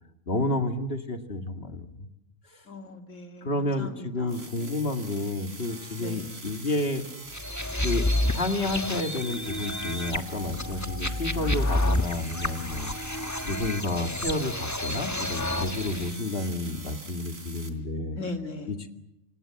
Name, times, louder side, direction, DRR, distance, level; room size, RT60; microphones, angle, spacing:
voice 1, 0.3-1.9 3.4-7.1 7.8-8.1 8.3-12.9 13.4-18.2 18.7-18.9, left 2 dB, 45° left, 6 dB, 2.4 m, -30 dB
voice 2, 2.7-4.8 6.0-6.3 18.2-18.7, left 2 dB, 65° left, 4 dB, 3.1 m, -39 dB
sound 1, 4.3-17.7, right 3 dB, 75° right, 3.7 m, -44 dB
sound 2, 7.3-16.1, left 1 dB, 15° left, 1.3 m, -30 dB
27.5 x 26.5 x 7.7 m, 0.87 s
omnidirectional pair, 1.4 m